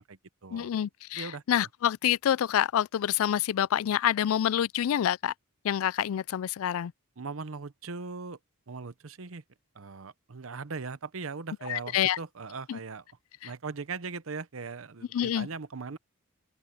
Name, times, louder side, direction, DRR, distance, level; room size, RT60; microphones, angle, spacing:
voice 1, 0.0-0.7 1.1-1.4 7.2-8.4 8.7-9.4 9.7-13.0 13.4-16.0, right 4 dB, 70° right, 0.8 m, -39 dB
voice 2, 0.5-5.3 5.6-6.9 11.7-12.2 12.7-12.8 13.4-13.5 15.1-15.5, left 10 dB, 75° left, 0.3 m, -27 dB
open air
head